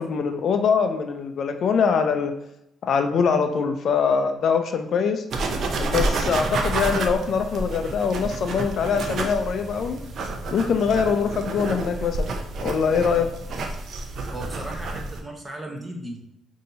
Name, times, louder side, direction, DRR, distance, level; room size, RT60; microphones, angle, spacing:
voice 1, 0.0-2.3 2.8-5.2 5.8-10.0 10.5-12.3 12.6-13.3, left 6 dB, 60° left, 7 dB, 0.4 m, -23 dB
sound 1, 5.3-15.2, right 2 dB, 60° right, 0.6 m, -29 dB
voice 2, 14.3-16.2, right 1 dB, 20° right, 2 dB, 0.9 m, -36 dB
5.3 x 2.7 x 2.7 m, 0.80 s
cardioid pair, 90°, 0 cm